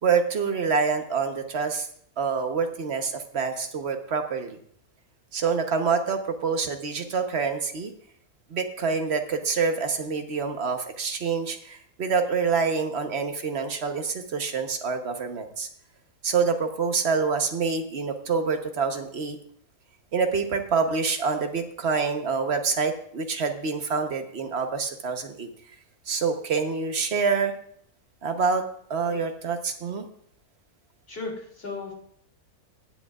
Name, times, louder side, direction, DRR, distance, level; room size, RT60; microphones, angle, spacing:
voice 1, 0.0-1.9 2.2-4.6 5.3-7.9 8.5-15.7 16.2-19.4 20.1-25.5 26.1-27.6 28.2-28.6 28.9-30.1, right 5 dB, 45° right, 6 dB, 1.2 m, -26 dB
voice 2, 31.1-31.9, left 3 dB, 40° left, -1 dB, 2.9 m, -35 dB
22.5 x 7.9 x 2.4 m, 0.63 s
omnidirectional pair, 1.6 m